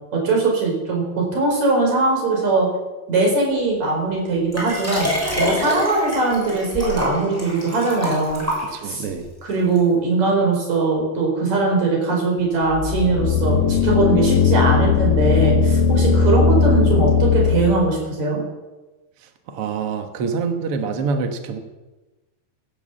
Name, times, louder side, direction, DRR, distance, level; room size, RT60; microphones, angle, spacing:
voice 1, 0.1-2.7 3.1-8.4 8.8-9.0 9.4-18.4, right 3 dB, 45° right, 0 dB, 5.4 m, -20 dB
Liquid, 4.5-9.1 9.8-9.9, left 1 dB, 5° right, 5.9 m, -26 dB
voice 2, 8.6-9.3 19.2-21.6, right 5 dB, 75° right, 6 dB, 1.3 m, -26 dB
sound 1, 12.7-17.8, left 6 dB, 75° left, 2.6 m, -18 dB
17.0 x 10.5 x 7.2 m, 1.1 s
omnidirectional pair, 4.7 m